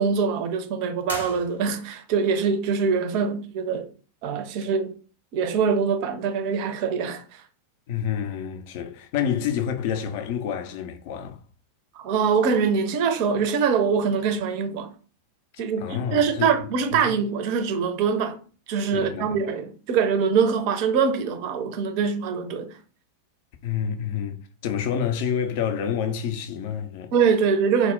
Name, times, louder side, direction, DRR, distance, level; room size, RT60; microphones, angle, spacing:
voice 1, 0.0-3.9 4.2-4.9 5.3-7.2 12.0-14.9 15.6-18.4 18.7-22.7 27.1-27.9, right 6 dB, 45° right, 0.4 m, -23 dB
sound 1, 1.0-2.1, left 1 dB, 75° left, 0.7 m, -37 dB
voice 2, 7.9-11.4 15.8-17.2 18.9-19.4 23.6-27.1, left 8 dB, 50° left, 0.4 m, -28 dB
2.1 x 2.0 x 3.6 m
figure-of-eight pair, 90°, 0 cm